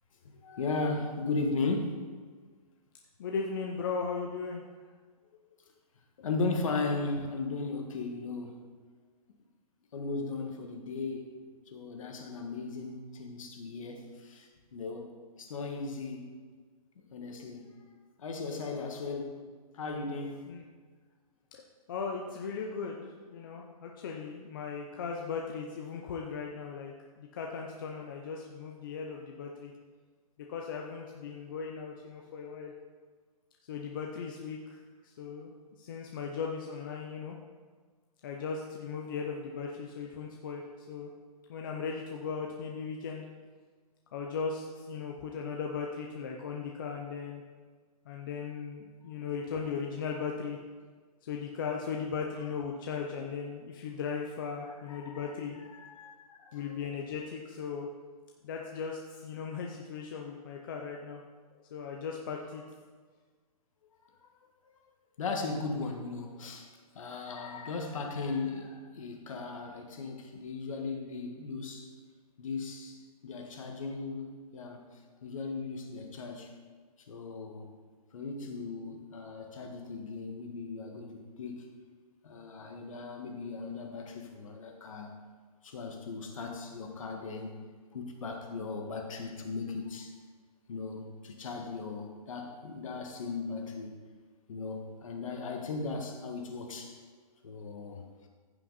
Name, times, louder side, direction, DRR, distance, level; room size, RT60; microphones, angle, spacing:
voice 1, 0.2-2.1 6.2-8.6 9.9-11.4 11.7-15.1 15.4-16.4 17.1-17.7 18.2-19.4 19.7-20.5 54.7-56.8 65.2-71.9 72.4-74.9 75.2-76.5 77.1-77.7 78.1-81.7 82.2-85.1 85.6-87.6 87.9-90.1 90.7-93.9 94.5-97.0 97.4-98.0, left 3 dB, 55° left, 3 dB, 1.6 m, -37 dB
voice 2, 3.2-4.6 20.5-20.6 21.5-21.6 21.9-29.7 30.4-32.7 33.7-34.8 35.0-35.5 35.8-37.4 38.2-40.6 40.9-41.1 41.5-43.3 44.1-47.4 48.1-50.6 51.2-55.6 56.5-57.9 58.4-61.2 61.7-62.6, left 5 dB, 35° left, 0 dB, 0.7 m, -37 dB
15.0 x 5.7 x 4.1 m, 1.5 s
hypercardioid pair, 170°, 20 cm